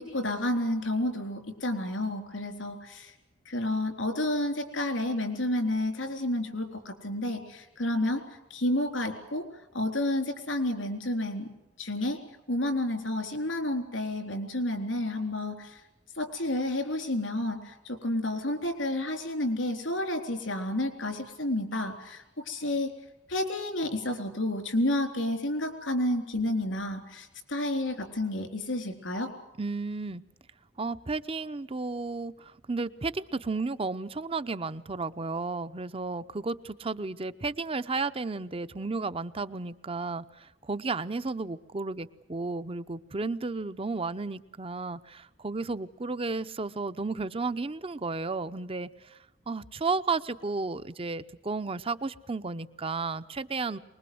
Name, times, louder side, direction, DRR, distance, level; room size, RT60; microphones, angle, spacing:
voice 1, 0.0-3.1 3.5-8.2 8.5-9.5 9.7-11.5 11.8-12.2 12.5-15.8 16.2-22.9 23.3-29.3, left 1 dB, 90° left, 6 dB, 3.9 m, -30 dB
voice 2, 29.6-30.2 30.8-49.2 49.5-53.8, right 3 dB, 30° right, 13 dB, 0.7 m, -33 dB
24.0 x 21.0 x 7.8 m, 0.95 s
head